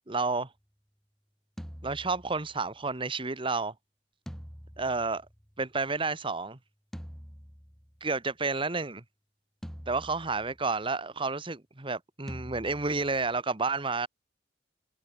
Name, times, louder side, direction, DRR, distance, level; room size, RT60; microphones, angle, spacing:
voice 1, 0.1-0.5 1.8-3.7 4.8-5.2 5.6-6.6 8.0-9.0 9.9-14.1, right 3 dB, 30° right, 1.4 m, -30 dB
sound 1, 1.6-2.8 4.3-5.8 6.9-8.1 9.6-10.8 12.3-13.4, equal, 5° left, 2.9 m, -46 dB
head